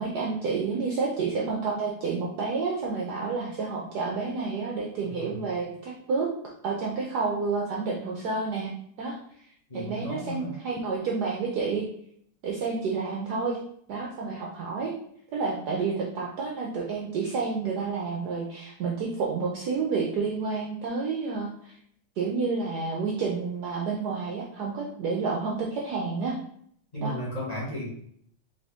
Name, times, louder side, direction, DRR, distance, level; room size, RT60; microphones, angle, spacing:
voice 1, 0.0-6.3 6.6-8.7 9.0-9.1 9.4-11.8 12.4-13.6 13.9-14.9 15.3-21.8 22.2-26.4 27.0-27.1, right 4 dB, 65° right, -2 dB, 1.0 m, -30 dB
voice 2, 5.0-5.4 9.7-10.5 26.9-27.9, equal, 20° left, -6 dB, 1.2 m, -34 dB
3.9 x 3.5 x 3.5 m, 0.66 s
omnidirectional pair, 2.3 m